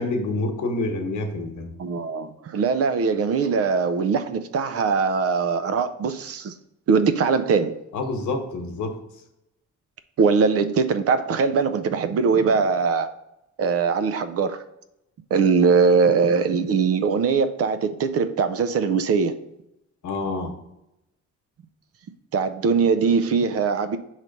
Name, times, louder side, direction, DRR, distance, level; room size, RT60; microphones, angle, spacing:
voice 1, 0.0-1.8 7.9-9.0 20.0-20.5, left 2 dB, 85° left, 5 dB, 1.1 m, -27 dB
voice 2, 1.8-6.5 6.9-7.8 10.2-13.1 13.6-14.6 15.3-19.4 22.3-24.0, right 5 dB, 55° right, 11 dB, 0.5 m, -21 dB
5.7 x 3.2 x 5.1 m, 0.86 s
cardioid pair, 155°, 29 cm